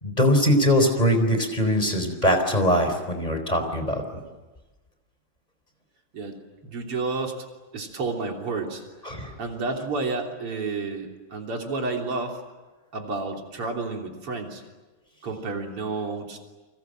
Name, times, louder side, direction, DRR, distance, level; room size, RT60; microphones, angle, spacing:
voice 1, 0.0-4.0 9.0-9.3, equal, 15° left, 6 dB, 4.2 m, -22 dB
voice 2, 6.1-7.4 7.7-8.8 9.4-12.4 12.9-14.6 15.2-16.4, right 3 dB, 90° right, 2 dB, 4.2 m, -30 dB
30.0 x 24.5 x 7.8 m, 1.2 s
omnidirectional pair, 2.4 m